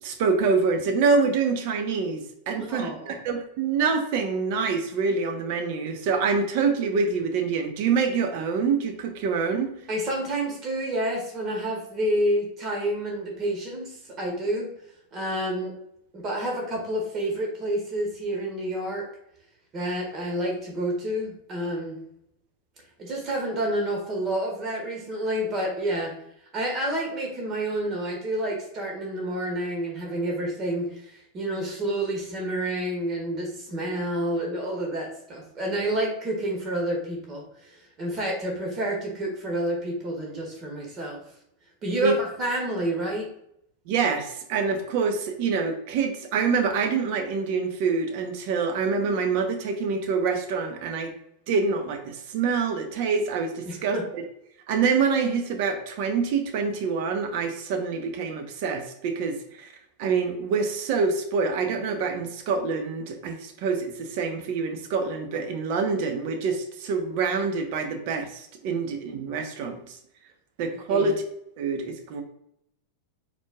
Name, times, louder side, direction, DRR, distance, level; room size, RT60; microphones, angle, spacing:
voice 1, 0.0-9.7 41.9-42.1 43.9-51.1 51.5-54.2 54.7-59.7 60.0-70.0 70.6-71.2 71.6-72.2, right 5 dB, 55° right, 5 dB, 0.9 m, -26 dB
voice 2, 2.6-3.2 9.9-13.9 14.2-14.7 15.1-15.7 16.1-19.1 19.7-22.0 23.0-26.1 26.5-41.2 41.8-43.3 53.7-54.0 70.9-71.1, right 1 dB, 35° right, 0 dB, 1.5 m, -29 dB
4.6 x 4.2 x 2.3 m, 0.74 s
hypercardioid pair, 95°, 0 cm